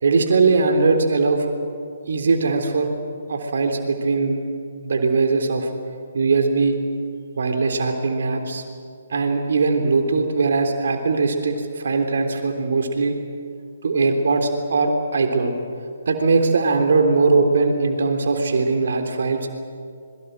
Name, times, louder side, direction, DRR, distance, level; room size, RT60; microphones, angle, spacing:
voice 1, 0.0-1.5 2.1-2.9 3.3-4.4 4.8-5.7 6.1-6.8 7.3-8.6 9.1-13.2 13.8-15.5 16.1-19.6, right 4 dB, 55° right, 5 dB, 3.4 m, -20 dB
26.5 x 22.5 x 7.8 m, 2.3 s
figure-of-eight pair, 130°, 0 cm